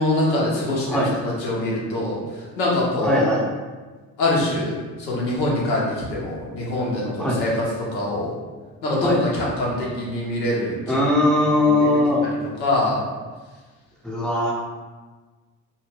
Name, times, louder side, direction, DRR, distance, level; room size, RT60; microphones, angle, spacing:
voice 1, 0.0-3.3 4.2-7.5 7.9-8.4 8.8-11.0 11.5-11.9 12.6-13.0, left 1 dB, 85° left, -4 dB, 0.7 m, -24 dB
voice 2, 3.0-3.4 7.2-7.4 9.0-9.2 10.9-12.2 14.0-14.5, left 1 dB, ahead, -5 dB, 0.5 m, -20 dB
2.1 x 2.1 x 3.2 m, 1.4 s
figure-of-eight pair, 45°, 49 cm